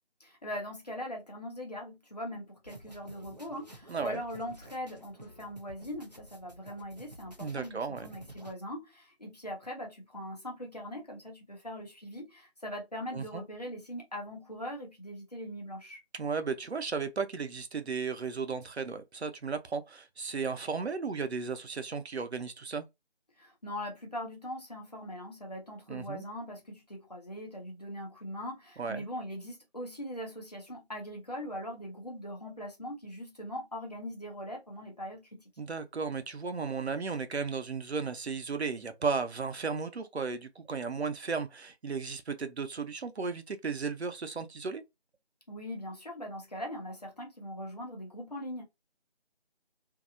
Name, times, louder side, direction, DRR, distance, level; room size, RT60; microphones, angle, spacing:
voice 1, 0.2-16.0 23.4-35.4 45.5-48.7, equal, 40° left, 0.9 m, -41 dB
sound 1, 2.6-8.5, right 1 dB, 40° right, 0.5 m, -52 dB
voice 2, 3.9-4.2 7.4-8.1 13.1-13.4 16.1-22.9 25.9-26.2 28.8-29.0 35.6-44.8, right 5 dB, 85° right, 0.7 m, -35 dB
2.7 x 2.0 x 2.4 m
figure-of-eight pair, 175°, 32 cm